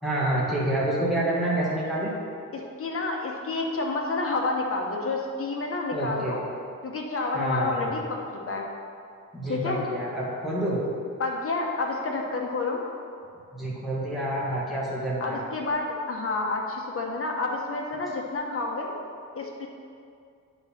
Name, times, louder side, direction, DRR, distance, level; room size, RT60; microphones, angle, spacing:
voice 1, 0.0-2.1 5.9-6.4 7.3-7.9 9.3-10.8 13.6-15.4, right 1 dB, ahead, -8 dB, 1.7 m, -28 dB
voice 2, 2.5-6.4 6.8-8.2 8.5-8.6 9.5-9.8 11.2-12.8 15.2-18.9 19.3-19.7, left 3 dB, 45° left, 0 dB, 1.1 m, -29 dB
9.2 x 4.1 x 5.8 m, 2.4 s
wide cardioid pair, 135°, 31 cm